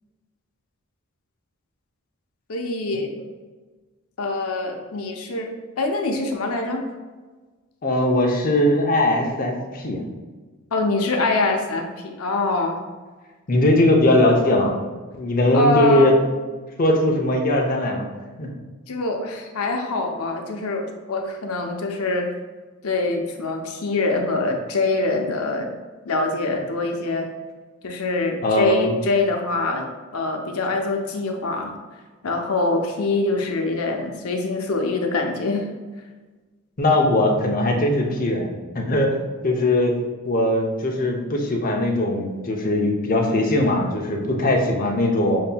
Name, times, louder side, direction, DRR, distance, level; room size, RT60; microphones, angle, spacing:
voice 1, 2.5-3.1 4.2-6.8 10.7-12.8 15.5-16.2 18.9-22.3 22.8-25.7 26.0-27.3 27.8-29.9 30.1-31.7 32.2-35.7, left 2 dB, 80° left, 3 dB, 0.7 m, -24 dB
voice 2, 7.8-10.0 13.5-14.7 15.2-16.1 16.8-18.1 18.4-18.5 28.4-28.9 36.8-39.9 40.2-45.4, left 1 dB, 40° left, 0 dB, 0.6 m, -20 dB
7.2 x 2.7 x 2.2 m, 1.3 s
head